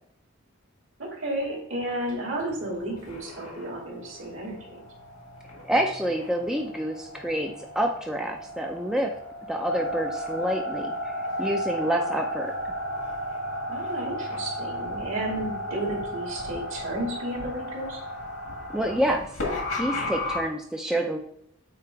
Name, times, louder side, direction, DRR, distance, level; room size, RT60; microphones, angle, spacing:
voice 1, 1.0-4.8 13.7-18.0, right 1 dB, 65° right, -2 dB, 2.4 m, -32 dB
sound 1, 2.4-20.4, left 1 dB, 85° left, 1.7 m, -34 dB
voice 2, 5.6-9.1 9.5-11.1 11.4-12.5 18.7-19.2 19.8-21.2, right 1 dB, 5° right, 1 dB, 0.4 m, -27 dB
8.2 x 2.9 x 4.6 m, 0.71 s
head